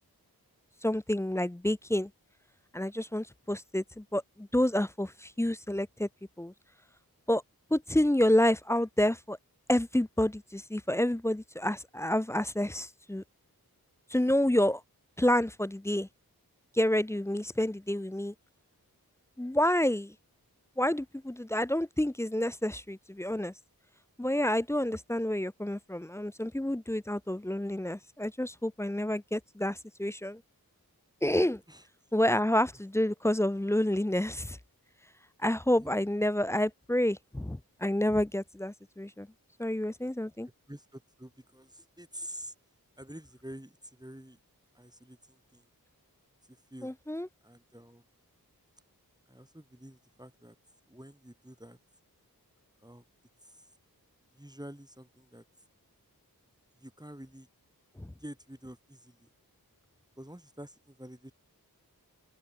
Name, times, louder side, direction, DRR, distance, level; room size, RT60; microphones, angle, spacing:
voice 1, 0.8-2.1 2.7-6.1 6.4-6.5 7.3-7.4 7.7-9.4 9.7-13.2 14.1-14.8 15.2-16.1 16.7-18.3 19.4-20.1 20.8-23.5 24.2-30.4 31.2-31.6 32.1-34.6 35.4-39.3 39.6-40.5 46.8-47.3 58.0-58.1, left 1 dB, 10° left, 0.3 m, -29 dB
voice 2, 40.7-42.5 43.0-44.4 44.7-45.7 46.5-46.9 47.4-48.0 49.3-50.6 50.9-51.8 52.8-53.0 53.4-53.7 54.3-55.4 56.8-57.5 58.2-59.3 60.2-61.3, equal, 10° right, 2.0 m, -48 dB
open air
wide cardioid pair, 40°, 37 cm